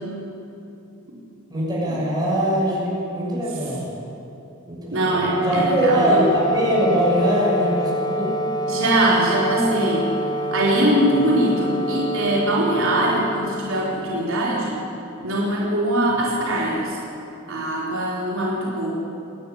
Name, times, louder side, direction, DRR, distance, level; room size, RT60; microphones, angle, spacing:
voice 1, 1.5-3.9 4.7-8.3, right 1 dB, 20° right, -6 dB, 6.5 m, -22 dB
voice 2, 4.9-6.3 8.7-10.1 10.5-14.8 15.2-17.0 17.5-18.9, right 1 dB, 65° right, -6 dB, 4.3 m, -22 dB
Wind instrument woodwind instrument, 5.0-14.3, equal, 20° left, 0.8 m, -27 dB
25.0 x 10.5 x 9.6 m, 2.9 s
head